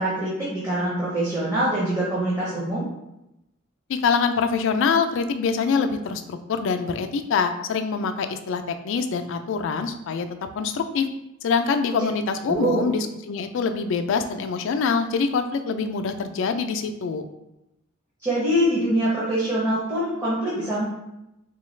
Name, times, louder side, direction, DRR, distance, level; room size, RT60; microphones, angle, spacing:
voice 1, 0.0-2.8 12.5-12.9 18.2-20.8, right 1 dB, 15° right, -8 dB, 0.8 m, -24 dB
voice 2, 3.9-10.3 10.6-11.1 11.4-17.3, left 5 dB, 65° left, 8 dB, 0.3 m, -25 dB
3.8 x 2.3 x 3.1 m, 0.90 s
head